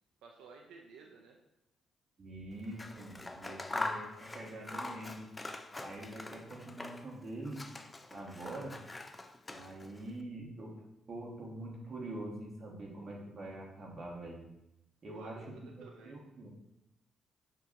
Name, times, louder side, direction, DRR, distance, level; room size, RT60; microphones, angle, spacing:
voice 1, 0.2-1.4 15.1-16.1, right 5 dB, 90° right, 1 dB, 0.4 m, -53 dB
voice 2, 2.2-5.3 5.8-7.6 8.1-8.8 9.5-10.8 11.1-14.5 15.0-16.5, right 1 dB, 40° right, -2 dB, 1.2 m, -44 dB
Scissors, 2.6-7.2 7.4-10.0, left 2 dB, 20° left, 0.3 m, -43 dB
6.7 x 2.8 x 2.5 m, 0.87 s
cardioid pair, 90°, 0 cm